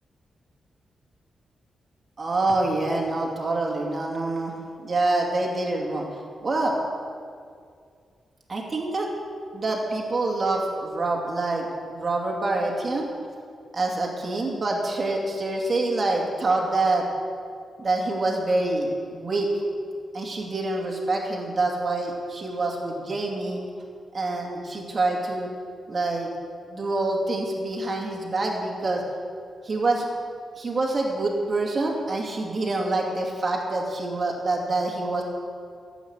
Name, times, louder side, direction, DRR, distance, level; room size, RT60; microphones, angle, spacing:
voice 1, 2.2-4.5 4.8-6.8 8.5-9.1 9.5-13.1 13.7-17.1 17.8-19.6 20.1-23.6 24.1-25.5 25.9-26.3 26.7-29.0 29.6-30.1 30.5-35.2, right 2 dB, 30° right, -1 dB, 2.5 m, -26 dB
15.5 x 8.2 x 8.3 m, 2.2 s
wide cardioid pair, 170°, 0 cm